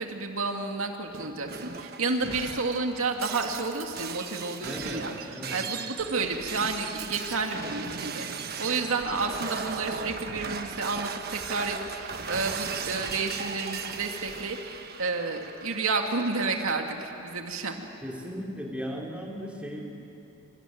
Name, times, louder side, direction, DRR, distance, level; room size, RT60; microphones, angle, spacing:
voice 1, 0.0-5.1 5.5-17.9, right 3 dB, 75° right, 3 dB, 2.1 m, -31 dB
Shatter, 1.1-16.7, right 5 dB, 45° right, 1.4 m, -37 dB
voice 2, 4.6-5.7 18.0-19.9, equal, 5° right, -1 dB, 3.2 m, -37 dB
26.0 x 25.0 x 9.3 m, 2.8 s
head